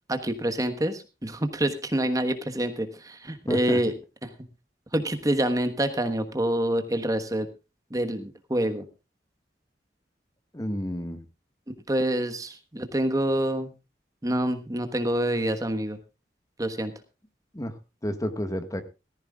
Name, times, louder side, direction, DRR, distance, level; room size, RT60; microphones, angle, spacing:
voice 1, 0.1-3.9 4.2-4.3 4.9-7.5 7.9-8.8 11.7-13.7 14.2-16.0 16.6-16.9, right 1 dB, 20° right, 7 dB, 1.2 m, -27 dB
voice 2, 3.5-3.8 10.5-11.2 17.5-17.7 18.0-18.8, equal, 20° left, 8 dB, 1.5 m, -30 dB
18.0 x 14.5 x 2.3 m, 0.29 s
head